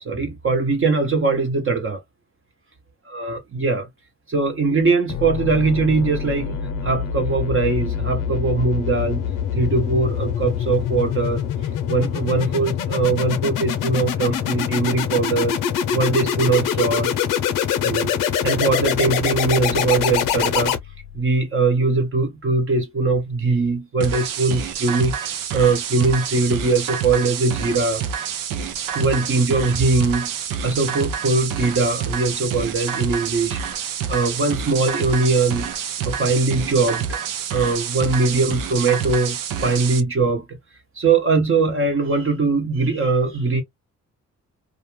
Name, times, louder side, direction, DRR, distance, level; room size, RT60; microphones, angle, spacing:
voice 1, 0.1-2.0 3.1-3.9 4.3-9.3 9.5-11.4 11.9-15.6 15.9-17.2 17.8-18.1 18.4-20.8 21.1-28.3 28.9-30.3 30.6-33.6 34.1-35.7 36.0-37.2 37.5-40.4 40.9-43.6, right 3 dB, 40° right, 0.9 m, -21 dB
sound 1, 5.1-21.2, left 8 dB, 85° left, 0.6 m, -24 dB
sound 2, 24.0-40.0, right 7 dB, 85° right, 0.6 m, -28 dB
2.4 x 2.2 x 3.0 m
cardioid pair, 65°, 32 cm